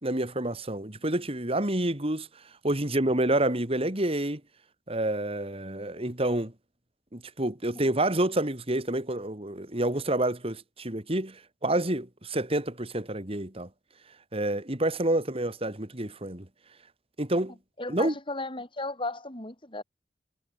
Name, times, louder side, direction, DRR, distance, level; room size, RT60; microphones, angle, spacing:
voice 1, 0.0-2.3 2.6-4.4 4.9-6.5 7.1-13.7 14.3-16.5 17.2-17.6 17.9-18.1, right 1 dB, 35° right, 3.0 m, -28 dB
voice 2, 17.8-19.8, left 2 dB, 30° left, 7.7 m, -35 dB
head